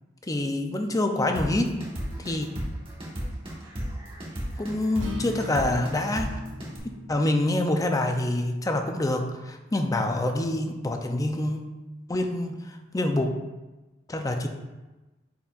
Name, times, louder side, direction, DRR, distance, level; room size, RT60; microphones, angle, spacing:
voice 1, 0.3-1.7 2.2-2.5 4.6-6.3 7.1-11.6 12.1-12.6 12.9-13.3 14.1-14.5, left 1 dB, 20° left, 4 dB, 0.5 m, -26 dB
sound 1, 1.2-6.8, equal, 30° right, 1.3 m, -34 dB
Acoustic guitar, 5.0-9.2, left 1 dB, 75° right, 0.9 m, -41 dB
9.1 x 4.4 x 2.5 m, 1.1 s
head